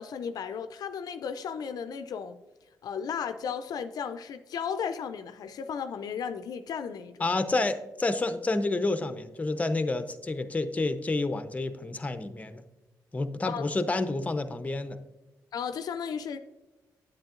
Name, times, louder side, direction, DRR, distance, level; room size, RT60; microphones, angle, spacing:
voice 1, 0.0-2.4 2.8-7.2 13.5-13.7 15.5-16.4, left 7 dB, 70° left, 0.4 m, -35 dB
voice 2, 7.2-12.6 13.1-15.0, left 2 dB, 20° left, 0.6 m, -29 dB
8.9 x 7.6 x 2.5 m
cardioid pair, 70°, 7 cm